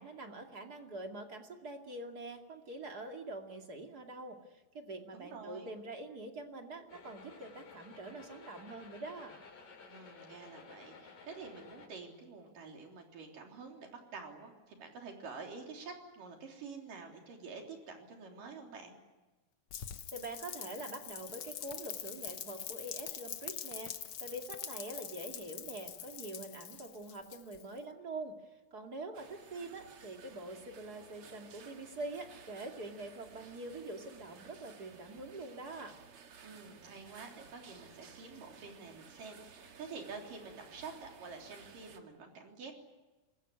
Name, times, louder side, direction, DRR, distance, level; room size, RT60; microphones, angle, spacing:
voice 1, 0.0-9.4 20.1-23.9 24.2-28.4 28.7-36.0, right 2 dB, 30° right, 3 dB, 2.5 m, -45 dB
voice 2, 5.1-5.7 9.9-18.9 36.4-42.7, right 4 dB, 80° right, 2 dB, 5.1 m, -48 dB
sound 1, 6.9-11.9, left 4 dB, 85° left, 5.6 m, -54 dB
Rain, 19.7-27.8, left 9 dB, 60° left, 1.6 m, -44 dB
sound 2, 29.1-42.0, right 6 dB, 50° right, 2.3 m, -56 dB
26.5 x 21.0 x 9.9 m, 1.1 s
omnidirectional pair, 3.8 m